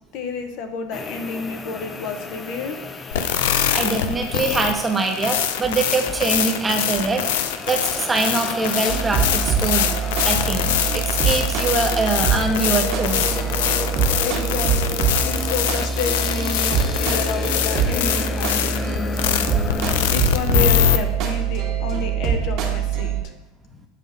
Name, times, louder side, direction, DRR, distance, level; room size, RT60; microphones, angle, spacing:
voice 1, 0.1-2.8 14.2-18.8 20.1-23.3 23.8-23.9, left 4 dB, 55° left, 6 dB, 0.9 m, -30 dB
sound 1, 0.9-20.1, left 4 dB, 20° left, 0.4 m, -33 dB
sound 2, 3.1-21.0, left 10 dB, 85° left, 0.5 m, -23 dB
voice 2, 3.7-9.9 10.2-13.4, right 3 dB, 15° right, 3 dB, 0.9 m, -23 dB
sound 3, 8.9-23.2, right 6 dB, 55° right, 1.5 m, -24 dB
7.5 x 3.6 x 5.2 m, 0.92 s
supercardioid pair, 130°, 0 cm